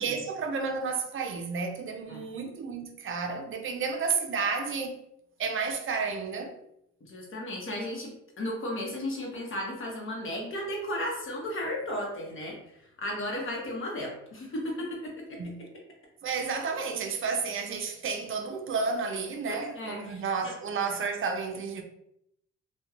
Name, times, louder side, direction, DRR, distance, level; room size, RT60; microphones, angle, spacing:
voice 1, 0.0-5.0 5.4-6.6 15.4-15.6 16.2-21.8, right 5 dB, 45° right, 0.5 m, -31 dB
voice 2, 7.0-8.1 8.4-15.4 19.5-20.5, left 1 dB, 40° left, 0.9 m, -35 dB
2.8 x 2.2 x 2.4 m
cardioid pair, 90°, 30 cm